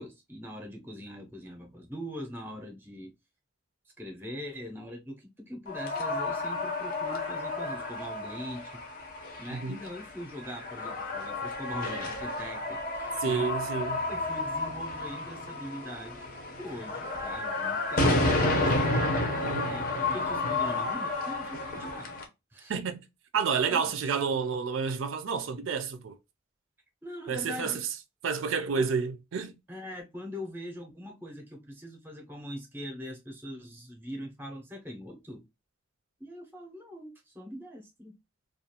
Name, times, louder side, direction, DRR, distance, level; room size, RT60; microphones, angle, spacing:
voice 1, 0.0-3.1 4.0-8.8 9.4-13.5 14.1-16.3 16.6-18.9 19.7-19.8 20.1-22.2 22.5-22.7 23.7-23.9 27.0-27.8 28.7-28.9 29.7-35.4 36.2-38.2, equal, 10° right, 0.6 m, -42 dB
sound 1, 5.7-22.2, left 2 dB, 45° left, 0.6 m, -31 dB
voice 2, 13.2-14.0 19.4-19.7 22.7-23.0 23.3-26.2 27.3-27.8 28.2-29.5, right 5 dB, 70° right, 0.4 m, -30 dB
2.4 x 2.3 x 2.7 m
head